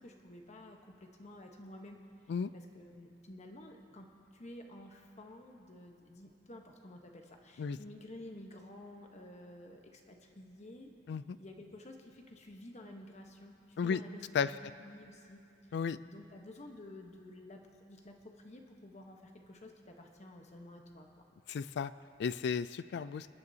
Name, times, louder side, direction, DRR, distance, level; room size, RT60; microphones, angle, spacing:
voice 1, 0.0-2.0 2.5-10.9 11.4-15.4 16.0-21.1, left 1 dB, 40° left, 3 dB, 1.1 m, -51 dB
voice 2, 21.5-21.9 22.2-23.3, left 6 dB, 65° left, 15 dB, 0.3 m, -33 dB
27.5 x 9.5 x 2.8 m, 2.5 s
head